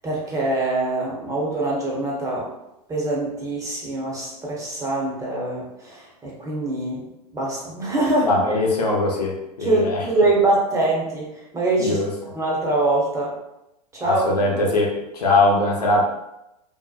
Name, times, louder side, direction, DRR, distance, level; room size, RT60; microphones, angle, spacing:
voice 1, 0.0-2.5 2.9-7.0 7.3-8.3 9.6-12.0 12.3-13.3 13.9-14.2, right 2 dB, 15° right, -4 dB, 0.8 m, -23 dB
voice 2, 8.3-10.1 11.8-12.1 14.0-16.0, left 2 dB, 85° left, -1 dB, 0.6 m, -21 dB
2.7 x 2.1 x 2.3 m, 0.89 s
hypercardioid pair, 100°, 20 cm